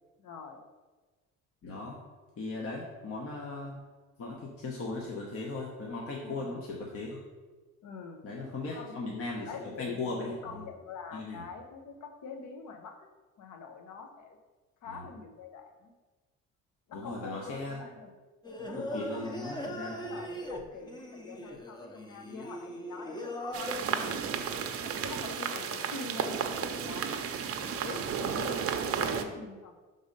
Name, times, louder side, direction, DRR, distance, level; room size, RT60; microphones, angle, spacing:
voice 1, 0.2-0.6 6.2-6.6 7.8-8.2 8.7-9.0 9.5-13.1 13.4-14.4 14.8-15.9 16.9-18.1 18.6-27.2 27.6-28.1 28.4-29.7, left 5 dB, 75° left, 5 dB, 0.9 m, -45 dB
voice 2, 1.6-2.0 2.4-3.7 4.2-7.2 8.2-9.5 9.8-10.3 11.1-11.4 14.9-15.1 16.9-17.8 18.6-20.2 28.2-28.5, left 3 dB, 50° left, -2 dB, 1.0 m, -38 dB
Singing, 18.4-23.8, equal, 15° left, 0.7 m, -39 dB
sound 1, 23.5-29.2, right 7 dB, 50° right, 0.6 m, -33 dB
5.3 x 3.9 x 5.3 m, 1.3 s
cardioid pair, 115°, 30 cm